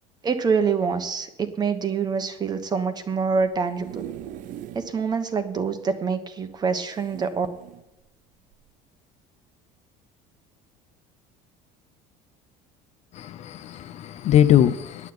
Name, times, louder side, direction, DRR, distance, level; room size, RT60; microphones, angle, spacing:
voice 1, 0.2-4.0 4.7-7.5, right 5 dB, 25° right, 1.1 m, -25 dB
sound 1, 3.4-4.9 5.4-5.5 5.7-5.8 6.9-7.8 8.5-8.7, right 12 dB, 55° right, 0.6 m, -40 dB
voice 2, 13.1-15.1, left 10 dB, 45° left, 0.6 m, -21 dB
9.8 x 8.2 x 8.6 m
cardioid pair, 140°, 16 cm